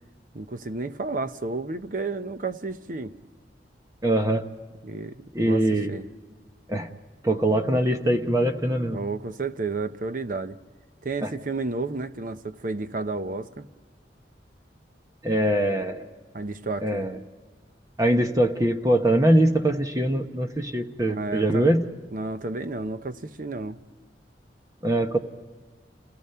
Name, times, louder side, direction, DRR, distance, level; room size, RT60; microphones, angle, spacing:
voice 1, 0.3-3.2 4.8-6.1 8.9-10.6 11.0-13.7 16.3-17.1 21.0-21.7 22.1-23.8, right 3 dB, 50° right, 0.8 m, -32 dB
voice 2, 4.0-4.4 5.3-5.9 6.7-6.9 7.2-9.0 11.2-11.3 15.2-16.0 16.8-17.2 18.0-21.8 24.8-25.2, right 1 dB, 20° right, 1.1 m, -22 dB
28.5 x 17.5 x 5.7 m
head